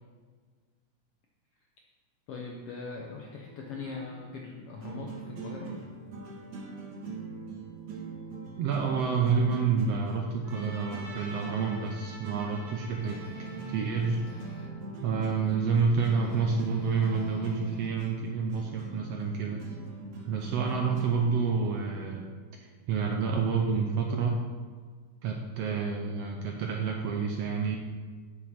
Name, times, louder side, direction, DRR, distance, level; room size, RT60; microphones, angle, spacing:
voice 1, 2.3-5.8, left 4 dB, 70° left, 0 dB, 1.5 m, -41 dB
sound 1, 3.4-22.2, right 3 dB, 60° right, 2.4 m, -42 dB
voice 2, 8.6-14.3 15.0-19.6 20.3-22.3 22.6-24.4 25.2-27.8, right 5 dB, 75° right, 1 dB, 1.5 m, -29 dB
Trumpet, 10.4-14.9, right 1 dB, 40° right, 1.6 m, -48 dB
sound 2, 13.0-14.8 16.0-17.9, right 1 dB, 50° left, 1.9 m, -45 dB
9.4 x 7.3 x 4.3 m, 1.5 s
omnidirectional pair, 3.5 m